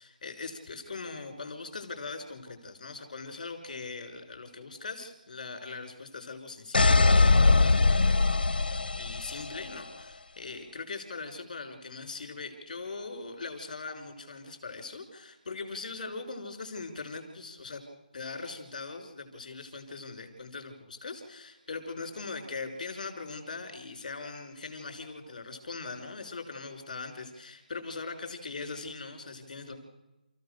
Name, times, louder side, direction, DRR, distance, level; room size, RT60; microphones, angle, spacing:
voice 1, 0.0-8.2 8.5-17.8 18.1-29.7, left 4 dB, 50° left, 6 dB, 5.6 m, -41 dB
sound 1, 6.7-9.6, left 3 dB, 75° left, 1.0 m, -22 dB
30.0 x 15.5 x 6.7 m, 1.0 s
figure-of-eight pair, 165°, 5 cm